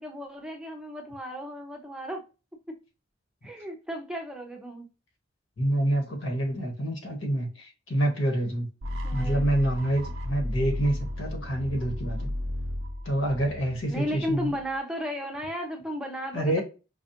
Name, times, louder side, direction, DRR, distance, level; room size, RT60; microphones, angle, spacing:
voice 1, 0.0-2.2 2.7-2.8 3.4-4.9 9.0-9.5 13.9-16.6, equal, 5° right, 0.6 m, -34 dB
voice 2, 5.6-8.7 9.1-12.3 13.0-14.6 16.3-16.6, right 1 dB, 85° left, 1.4 m, -27 dB
sound 1, 8.8-14.7, left 1 dB, 85° right, 0.6 m, -34 dB
5.1 x 2.3 x 2.9 m
head